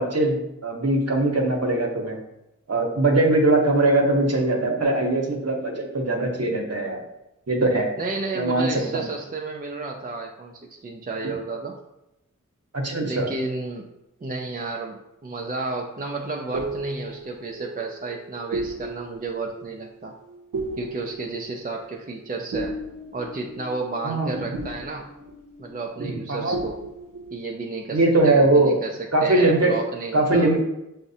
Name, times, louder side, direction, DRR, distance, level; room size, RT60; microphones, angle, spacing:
voice 1, 0.0-2.2 2.7-7.0 7.5-7.9 8.3-9.0 11.2-11.3 12.7-13.3 24.0-24.4 26.0-26.6 27.9-28.7 29.1-29.7 30.1-30.6, right 2 dB, 50° right, 1 dB, 0.8 m, -21 dB
voice 2, 8.0-11.8 13.0-13.9 14.2-20.1 20.8-22.8 23.1-25.1 25.6-26.8 27.3-28.0 28.2-30.5, right 3 dB, 30° right, 0 dB, 0.4 m, -32 dB
sound 1, 16.1-26.3 26.5-27.4, right 2 dB, 85° right, 0.5 m, -36 dB
5.8 x 2.1 x 2.7 m, 0.89 s
wide cardioid pair, 40°, 32 cm